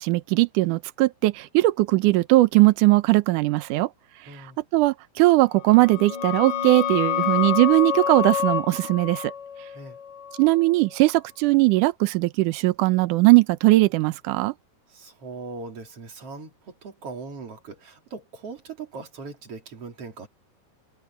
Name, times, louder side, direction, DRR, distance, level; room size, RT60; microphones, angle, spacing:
voice 1, 0.0-3.9 4.7-9.3 10.4-14.5, right 19 dB, 90° right, 1.8 m, -19 dB
voice 2, 4.3-4.6 9.7-10.0 14.9-20.3, right 4 dB, 40° right, 3.9 m, -39 dB
sound 1, 5.6-11.1, left 8 dB, 80° left, 5.5 m, -28 dB
omnidirectional pair, 4.6 m